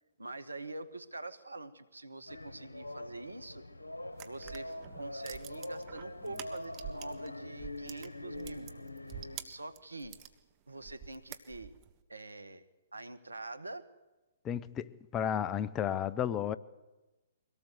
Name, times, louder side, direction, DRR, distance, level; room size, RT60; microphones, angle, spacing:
voice 1, 0.2-3.6 4.2-8.7 9.4-10.2 10.7-11.7 12.1-12.6 12.9-13.9, right 2 dB, 85° right, 1.6 m, -45 dB
sound 1, 2.3-9.4, left 1 dB, 85° left, 1.6 m, -44 dB
sound 2, 4.1-7.3 7.6-10.3 10.8-11.9, right 10 dB, 30° right, 1.8 m, -47 dB
voice 2, 14.4-16.6, left 9 dB, 20° left, 0.8 m, -33 dB
24.0 x 18.0 x 8.1 m
figure-of-eight pair, 125°, 0 cm